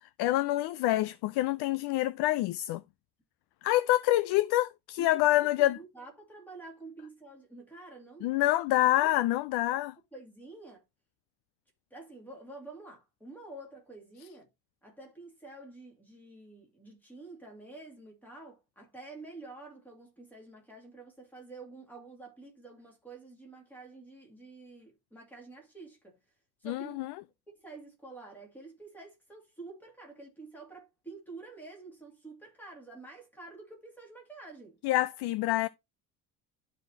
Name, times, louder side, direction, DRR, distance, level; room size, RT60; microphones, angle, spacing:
voice 1, 0.2-2.8 3.6-5.8 8.2-9.9 26.6-27.1 34.8-35.7, left 16 dB, 85° left, 0.5 m, -27 dB
voice 2, 5.0-8.3 9.0-9.2 10.1-10.8 11.9-14.5 14.8-26.2 26.6-27.1 27.5-34.8, right 3 dB, 5° left, 2.4 m, -48 dB
12.0 x 4.2 x 2.7 m
cardioid pair, 180°, 38 cm